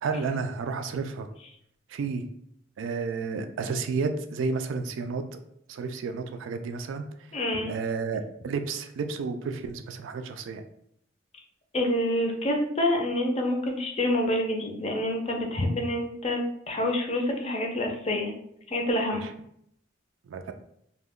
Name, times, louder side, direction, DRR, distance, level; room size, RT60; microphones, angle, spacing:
voice 1, 0.0-1.3 1.9-2.3 2.8-5.4 5.7-7.1 7.7-10.6 19.1-19.3 20.3-20.5, right 4 dB, 80° right, 7 dB, 0.3 m, -31 dB
voice 2, 7.3-7.7 11.7-18.3 18.7-19.3, left 1 dB, 35° left, 2 dB, 0.5 m, -27 dB
2.3 x 2.1 x 3.5 m, 0.72 s
head